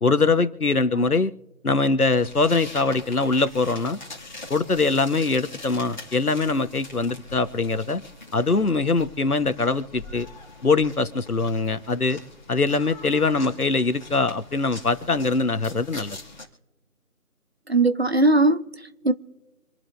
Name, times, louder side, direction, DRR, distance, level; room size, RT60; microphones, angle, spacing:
voice 1, 0.0-1.3 1.6-4.0 4.5-8.0 8.3-10.3 10.6-12.2 12.5-16.2, left 3 dB, 75° left, 1.4 m, -22 dB
sound 1, 2.1-16.4, left 2 dB, 30° left, 2.3 m, -43 dB
voice 2, 17.7-19.1, right 2 dB, 45° right, 0.6 m, -20 dB
26.5 x 11.5 x 2.7 m
figure-of-eight pair, 165°, 44 cm